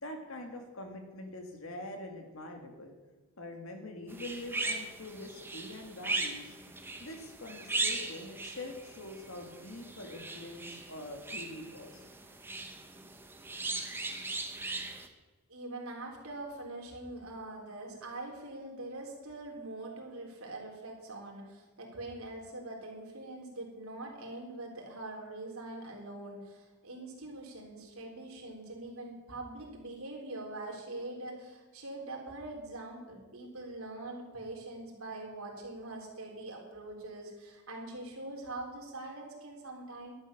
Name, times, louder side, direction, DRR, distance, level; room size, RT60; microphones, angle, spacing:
voice 1, 0.0-2.9 3.4-6.6 7.0-12.0, left 1 dB, 75° left, 4 dB, 2.2 m, -44 dB
sound 1, 4.1-15.1, right 3 dB, 10° right, 1.0 m, -39 dB
voice 2, 15.5-40.1, right 2 dB, 80° right, 0 dB, 3.6 m, -43 dB
12.0 x 10.0 x 6.7 m, 1.2 s
head